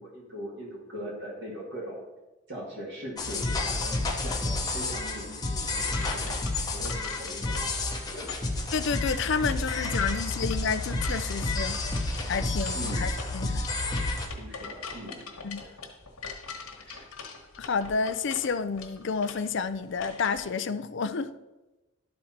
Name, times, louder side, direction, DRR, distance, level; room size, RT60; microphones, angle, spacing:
voice 1, 0.0-2.1 2.5-8.3 12.7-13.1 14.4-15.2 15.6-15.8 16.8-17.0, equal, 55° right, -3 dB, 1.9 m, -41 dB
sound 1, 3.2-14.3, left 2 dB, 20° left, 0.9 m, -30 dB
sound 2, 5.7-20.4, left 5 dB, 90° left, 1.3 m, -43 dB
voice 2, 8.7-11.8 12.3-13.6 15.4-15.6 17.6-21.3, left 5 dB, 55° left, 12 dB, 0.4 m, -30 dB
12.0 x 4.3 x 4.3 m, 1.1 s
head